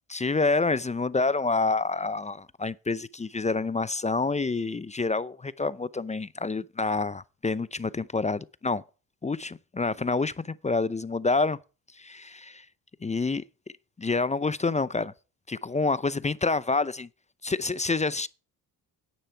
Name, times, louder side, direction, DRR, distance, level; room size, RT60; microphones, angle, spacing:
voice 1, 0.1-8.8 9.2-11.6 12.0-12.7 13.0-13.4 14.0-15.1 15.5-17.1 17.4-18.3, left 3 dB, 15° left, 0.6 m, -27 dB
10.0 x 9.3 x 4.5 m
supercardioid pair, 60°, 41 cm